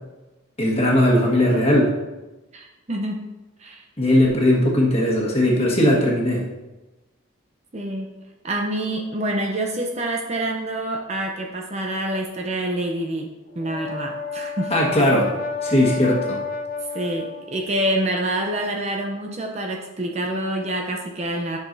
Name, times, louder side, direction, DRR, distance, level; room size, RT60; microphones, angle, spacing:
voice 1, 0.6-1.9 4.0-6.4 14.7-15.3 15.6-16.4, left 1 dB, 30° left, -3 dB, 1.5 m, -18 dB
voice 2, 2.5-3.3 3.6-3.8 7.7-8.1 8.4-14.8 16.9-21.6, right 1 dB, 30° right, 1 dB, 0.6 m, -27 dB
Brass instrument, 13.5-17.7, left 4 dB, 45° left, 0.8 m, -31 dB
10.5 x 6.0 x 2.7 m, 1.1 s
head